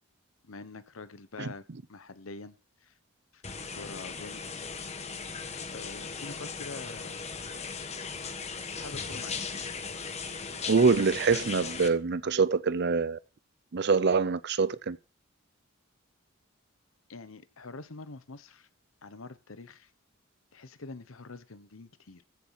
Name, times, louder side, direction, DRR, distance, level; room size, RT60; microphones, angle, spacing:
voice 1, 0.4-3.0 3.3-3.4 3.7-4.4 5.7-7.2 8.8-9.4 17.1-18.7 19.0-19.9 20.5-22.2, left 3 dB, 85° left, 1.0 m, -45 dB
sound 1, 3.4-11.9, left 5 dB, 35° left, 1.2 m, -38 dB
voice 2, 10.7-13.2 13.7-15.0, right 4 dB, 55° right, 0.6 m, -25 dB
15.0 x 7.3 x 5.7 m
head